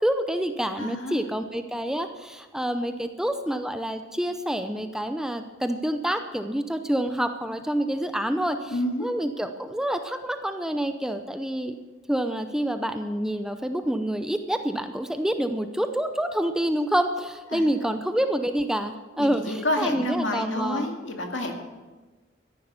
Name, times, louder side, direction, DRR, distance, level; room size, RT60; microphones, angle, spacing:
voice 1, 0.0-8.7 9.0-11.7 12.1-20.9, right 1 dB, 5° right, 7 dB, 0.6 m, -27 dB
voice 2, 0.8-1.2 8.7-9.1 17.5-17.9 19.2-21.5, left 1 dB, 70° left, 3 dB, 2.2 m, -29 dB
13.5 x 11.0 x 7.0 m, 1.2 s
head